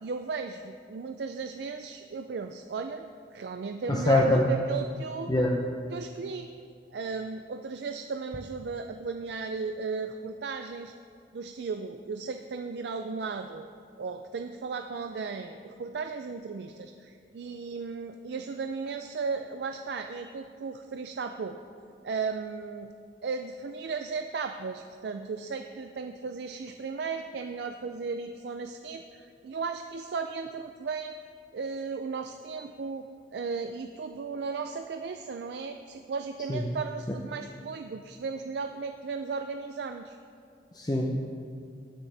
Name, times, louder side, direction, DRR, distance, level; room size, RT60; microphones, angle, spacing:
voice 1, 0.0-3.0 3.3-5.3 5.9-6.5 6.9-10.9 11.3-13.7 14.0-21.6 22.0-22.9 23.2-31.1 31.5-33.1 33.3-40.2, right 4 dB, 65° right, 7 dB, 0.4 m, -35 dB
voice 2, 3.9-4.6 5.3-5.5 36.5-36.6 37.1-37.2 40.7-41.2, left 1 dB, 20° left, -1 dB, 0.6 m, -24 dB
19.0 x 6.4 x 3.3 m, 2.3 s
head